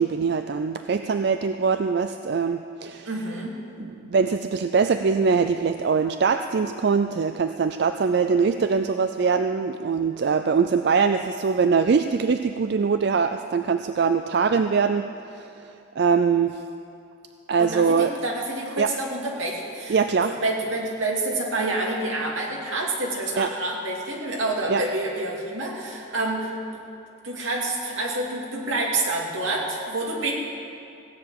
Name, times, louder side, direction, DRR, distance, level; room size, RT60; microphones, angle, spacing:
voice 1, 0.0-3.1 3.8-16.6 17.5-18.1 18.8-18.9 19.9-20.3 23.4-23.5 24.7-24.8, right 5 dB, 55° right, 8 dB, 0.4 m, -23 dB
voice 2, 3.0-3.6 17.6-26.5 27.2-30.3, right 2 dB, 80° right, -2 dB, 2.5 m, -28 dB
16.0 x 7.0 x 8.9 m, 2.5 s
head